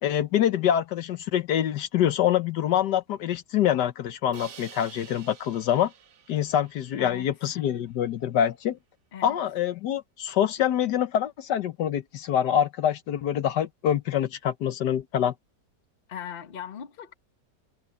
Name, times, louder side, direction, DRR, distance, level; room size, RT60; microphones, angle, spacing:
voice 1, 0.0-5.9 6.3-8.8 9.2-15.3, left 10 dB, 75° left, 1.5 m, -25 dB
Crash cymbal, 4.3-7.4, right 7 dB, 75° right, 2.0 m, -49 dB
voice 2, 7.0-7.3 9.1-9.4 16.1-17.1, left 9 dB, 35° left, 1.1 m, -39 dB
omnidirectional pair, 1.8 m